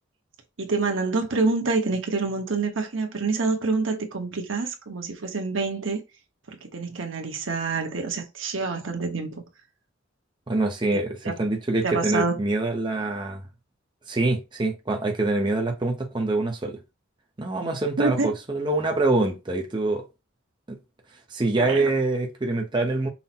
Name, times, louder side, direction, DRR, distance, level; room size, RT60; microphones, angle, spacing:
voice 1, 0.6-6.0 6.5-9.4 10.9-11.3 11.8-12.4 18.0-18.3 21.6-21.9, right 3 dB, 80° right, 1.1 m, -27 dB
voice 2, 10.5-13.4 14.1-16.8 17.4-20.0 20.7-20.8 21.3-23.1, right 2 dB, 25° right, 0.7 m, -25 dB
5.6 x 2.1 x 4.3 m
head